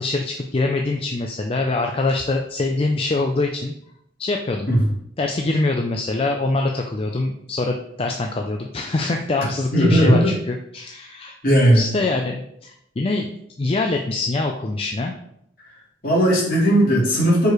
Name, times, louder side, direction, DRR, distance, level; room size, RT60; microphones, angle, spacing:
voice 1, 0.0-3.7 4.2-4.7 5.2-11.4 11.7-13.3 13.6-15.1, left 2 dB, 30° left, 3 dB, 0.4 m, -24 dB
voice 2, 9.7-10.3 11.4-11.8 16.0-17.5, equal, 50° left, -5 dB, 2.4 m, -16 dB
4.8 x 4.6 x 4.8 m, 0.74 s
head